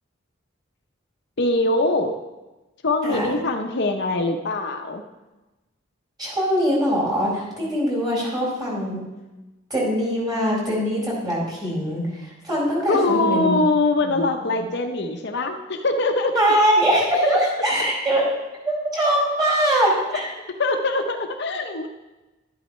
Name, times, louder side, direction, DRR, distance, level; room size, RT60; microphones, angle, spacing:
voice 1, 1.4-2.2 2.8-5.0 12.9-16.3 20.1-20.2 20.6-21.9, left 2 dB, 60° left, 4 dB, 0.8 m, -22 dB
voice 2, 6.2-9.0 9.7-13.6 14.0-14.2 16.3-18.3 18.6-20.3, equal, 20° right, -5 dB, 4.2 m, -22 dB
11.5 x 11.0 x 3.2 m, 1.1 s
head